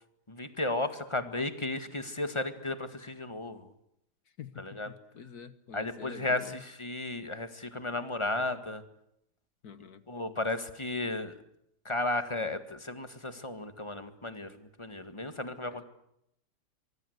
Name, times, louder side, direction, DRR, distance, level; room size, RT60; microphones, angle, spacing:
voice 1, 0.3-3.7 4.6-4.9 5.7-8.8 10.1-11.4 11.8-15.8, left 2 dB, 15° left, 9 dB, 1.6 m, -34 dB
voice 2, 4.4-6.6 9.6-10.0 15.7-15.8, left 7 dB, 50° left, 13 dB, 1.5 m, -47 dB
24.0 x 24.0 x 8.1 m, 0.78 s
omnidirectional pair, 2.3 m